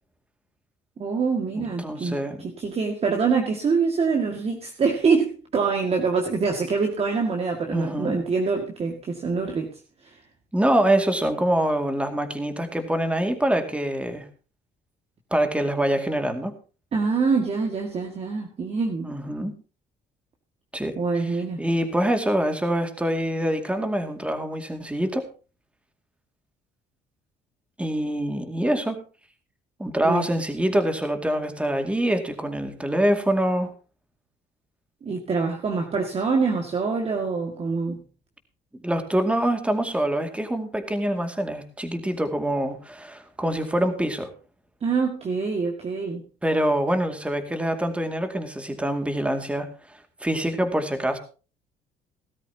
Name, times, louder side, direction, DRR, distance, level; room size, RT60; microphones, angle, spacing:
voice 1, 1.0-2.2 2.4-9.7 10.0-10.2 16.9-19.1 21.0-21.6 30.0-30.3 35.0-38.0 44.8-46.2, right 4 dB, 35° right, 2 dB, 2.1 m, -25 dB
voice 2, 1.6-2.4 7.7-8.2 10.5-14.3 15.3-16.5 19.0-19.5 20.7-25.3 27.8-29.0 29.8-33.7 38.8-44.3 46.4-49.7 50.2-51.2, right 1 dB, 5° right, 7 dB, 2.3 m, -25 dB
17.5 x 13.0 x 2.9 m, 0.34 s
cardioid pair, 110°, 17 cm